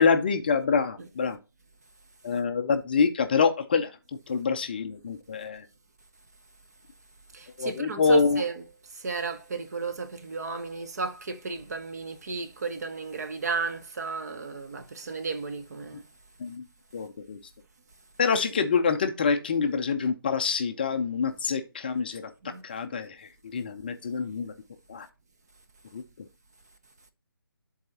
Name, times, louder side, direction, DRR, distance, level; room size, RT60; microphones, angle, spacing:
voice 1, 0.0-1.4 2.2-3.9 4.3-5.6 7.6-8.4 16.4-16.6 16.9-17.4 18.2-22.3 22.6-24.5 24.9-25.1 25.9-26.0, left 5 dB, 25° left, 0.4 m, -26 dB
voice 2, 7.3-16.1 22.4-22.6, right 4 dB, 45° right, 0.8 m, -34 dB
10.5 x 4.0 x 2.8 m
figure-of-eight pair, 150°, 12 cm